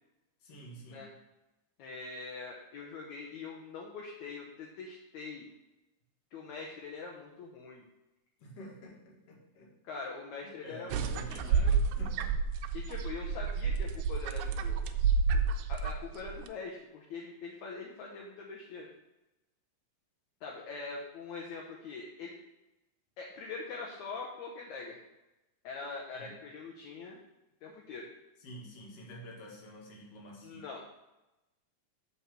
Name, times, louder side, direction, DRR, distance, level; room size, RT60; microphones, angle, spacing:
voice 1, 0.4-1.0 8.4-10.0 10.4-12.4 26.1-26.3 28.4-30.6, equal, 55° left, -2 dB, 2.2 m, -49 dB
voice 2, 1.8-5.5 6.3-7.8 9.8-11.7 12.7-14.9 15.7-18.9 20.4-22.4 23.2-25.0 25.6-27.2 27.6-28.1 30.4-30.8, left 4 dB, 70° left, -1 dB, 1.9 m, -43 dB
sound 1, 10.9-16.5, right 5 dB, 80° right, 2.2 m, -30 dB
7.0 x 4.5 x 6.0 m, 1.0 s
omnidirectional pair, 4.0 m